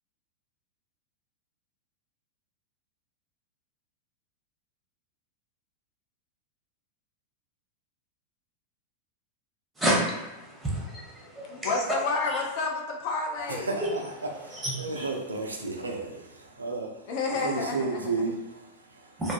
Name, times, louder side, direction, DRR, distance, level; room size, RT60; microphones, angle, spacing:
voice 1, 9.8-11.8 12.3-12.4 13.8-13.9 14.3-15.1 19.2-19.3, right 1 dB, 10° right, -4 dB, 0.8 m, -30 dB
voice 2, 11.5-13.8 17.1-18.3, left 3 dB, 50° left, 0 dB, 0.5 m, -30 dB
voice 3, 13.5-14.0 14.4-17.0 17.3-19.1, right 3 dB, 75° right, 2 dB, 0.4 m, -33 dB
2.5 x 2.3 x 2.5 m, 1.1 s
figure-of-eight pair, 90°, 0 cm